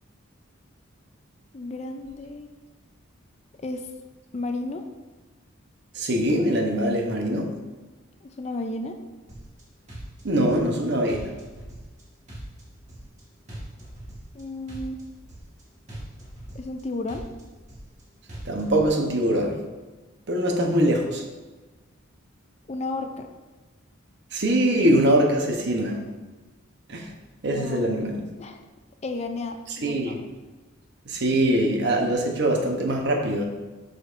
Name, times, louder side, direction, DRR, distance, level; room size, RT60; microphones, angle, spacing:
voice 1, 1.5-2.5 3.6-3.9 4.3-4.8 8.2-9.0 14.3-15.0 16.5-17.2 22.7-23.3 27.4-27.9 28.4-28.6 29.0-30.3, left 2 dB, 30° left, 6 dB, 0.4 m, -33 dB
voice 2, 5.9-7.6 10.2-11.3 18.5-19.6 20.3-21.2 24.3-26.1 26.9-27.1 27.4-28.2 29.8-30.2 31.1-33.5, right 1 dB, 55° right, 2 dB, 0.9 m, -23 dB
sound 1, 9.3-9.6 9.9-10.8 11.1-12.0 12.3-13.2 13.5-14.4 14.7-15.6 15.9-16.8 17.1-18.0 18.3-18.9, right 1 dB, 35° right, 1.6 m, -41 dB
8.1 x 5.2 x 2.6 m, 1.2 s
head